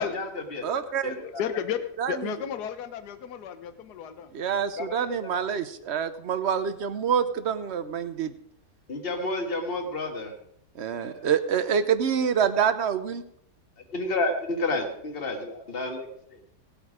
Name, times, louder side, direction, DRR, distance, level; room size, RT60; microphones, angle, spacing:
voice 1, 0.0-1.4 4.8-5.3 8.9-10.3 10.9-11.3 13.9-16.1, left 2 dB, 35° left, 3 dB, 1.9 m, -31 dB
voice 2, 0.6-1.2 2.0-2.4 4.3-8.3 10.7-13.2, right 7 dB, 50° right, 11 dB, 1.0 m, -26 dB
voice 3, 1.2-4.3, left 8 dB, 75° left, 10 dB, 1.5 m, -33 dB
17.5 x 8.8 x 5.0 m, 0.71 s
omnidirectional pair, 1.8 m